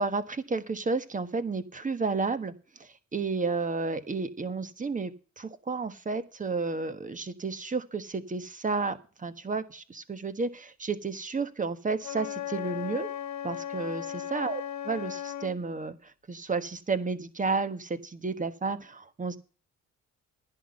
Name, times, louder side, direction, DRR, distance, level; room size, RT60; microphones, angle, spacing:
voice 1, 0.0-13.1 13.4-19.4, right 4 dB, 25° right, 11 dB, 1.4 m, -32 dB
Wind instrument woodwind instrument, 12.0-15.6, left 10 dB, 70° left, 1.5 m, -36 dB
10.5 x 9.8 x 5.4 m, 0.36 s
cardioid pair, 90°, 30 cm